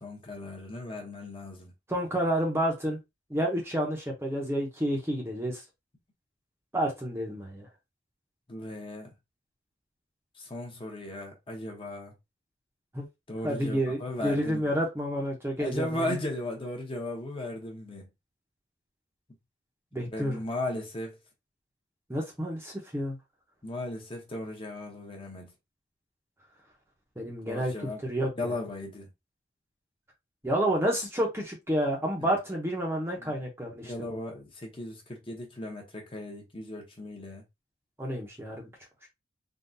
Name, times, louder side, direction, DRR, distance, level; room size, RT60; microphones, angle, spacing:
voice 1, 0.0-1.7 8.5-9.1 10.4-12.1 13.3-14.7 15.6-18.1 20.0-21.2 23.6-25.5 27.4-28.0 28.4-29.1 32.2-32.4 33.2-33.3 33.8-37.4, left 1 dB, 25° left, 0.9 m, -36 dB
voice 2, 1.9-3.0 3.3-5.6 6.7-7.7 12.9-13.1 13.4-16.1 19.9-20.4 22.1-23.2 27.2-27.7 28.0-28.5 30.4-34.2 38.0-38.7 39.0-39.1, equal, 10° right, 0.7 m, -30 dB
3.7 x 2.3 x 2.6 m
head